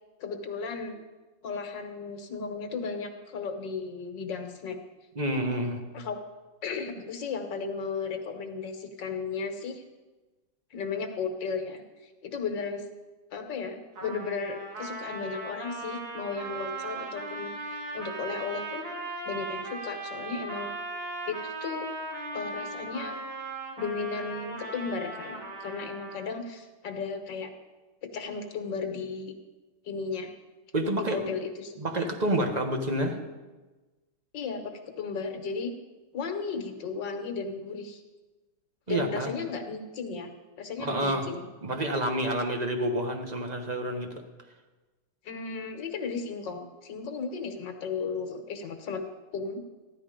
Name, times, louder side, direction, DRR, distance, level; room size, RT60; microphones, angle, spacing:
voice 1, 0.2-1.0 1.4-4.8 5.9-6.2 6.6-9.8 10.7-12.8 13.3-18.9 19.3-20.7 21.3-21.9 22.3-23.2 23.8-27.5 28.1-29.3 29.8-30.3 31.0-31.8 34.3-35.7 36.1-38.0 38.9-40.3 40.6-41.4 45.2-49.0 49.3-49.6, left 5 dB, 65° left, 5 dB, 1.9 m, -35 dB
voice 2, 5.2-5.8 30.7-31.3 31.8-33.2 38.9-39.3 40.8-41.3 41.6-44.1, right 1 dB, 25° right, 4 dB, 1.1 m, -28 dB
Trumpet, 14.0-26.4, right 2 dB, 80° right, 2.7 m, -38 dB
15.0 x 12.0 x 5.1 m, 1.2 s
omnidirectional pair, 2.2 m